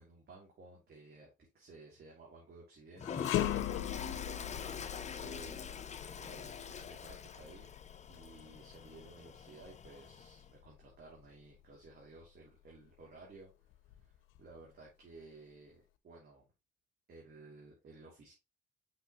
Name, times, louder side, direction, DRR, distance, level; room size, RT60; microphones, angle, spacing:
voice 1, 0.0-3.7 4.0-5.8 6.2-7.7 8.1-13.5 14.0-16.4 17.1-18.3, right 3 dB, 55° right, 2.8 m, -56 dB
sound 1, 3.0-12.3 12.7-12.9 13.7-14.6, left 13 dB, 85° left, 0.6 m, -41 dB
Toilet flush, 3.0-10.5, left 7 dB, 35° left, 0.7 m, -45 dB
5.9 x 5.5 x 3.0 m
cardioid pair, 90°, 20 cm